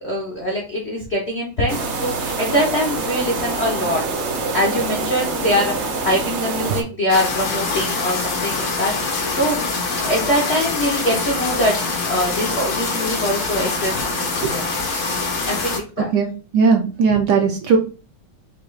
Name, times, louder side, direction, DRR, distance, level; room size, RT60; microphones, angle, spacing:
voice 1, 0.0-4.0 4.5-9.7 10.1-11.8 12.0-14.2 14.4-15.2 15.5-16.1, equal, 60° left, -2 dB, 0.7 m, -23 dB
sound 1, 1.7-6.8, right 3 dB, 90° right, 0.6 m, -25 dB
sound 2, 7.1-15.8, left 3 dB, 90° left, 2.4 m, -24 dB
voice 2, 16.5-17.8, right 5 dB, 70° right, 3 dB, 1.1 m, -17 dB
5.7 x 2.3 x 3.2 m, 0.34 s
omnidirectional pair, 2.3 m